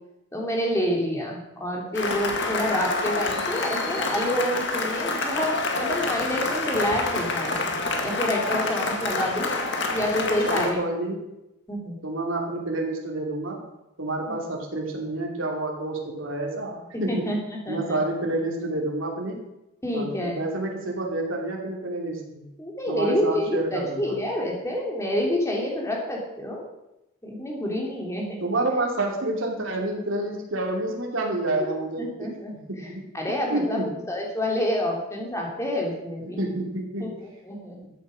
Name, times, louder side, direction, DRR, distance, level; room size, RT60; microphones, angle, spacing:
voice 1, 0.3-9.5 9.9-10.8 11.7-12.0 17.1-18.0 19.8-20.4 22.6-26.6 27.2-28.4 32.0-32.5 33.1-36.4 37.0-37.8, left 1 dB, 15° left, -1 dB, 3.0 m, -28 dB
Cheering / Applause, 1.9-10.7, left 3 dB, 55° left, 1.9 m, -27 dB
voice 2, 10.4-11.3 12.0-13.6 14.0-17.3 17.7-19.4 19.9-22.4 22.9-24.2 28.4-32.3 32.7-33.0 33.5-33.9 36.2-37.1, right 2 dB, 65° right, 0 dB, 2.9 m, -29 dB
13.5 x 8.3 x 6.4 m, 0.91 s
head